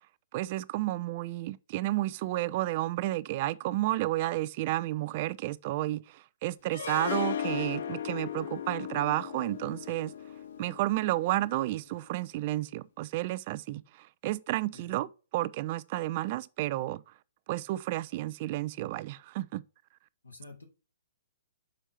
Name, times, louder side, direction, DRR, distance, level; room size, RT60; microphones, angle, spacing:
voice 1, 0.3-10.1 10.6-17.0 17.5-19.6, right 16 dB, 40° right, 0.4 m, -31 dB
Harp, 6.7-11.8, left 9 dB, 55° left, 0.5 m, -37 dB
voice 2, 20.2-20.7, left 3 dB, 80° left, 2.0 m, -49 dB
6.2 x 4.4 x 4.2 m
figure-of-eight pair, 120°, 0 cm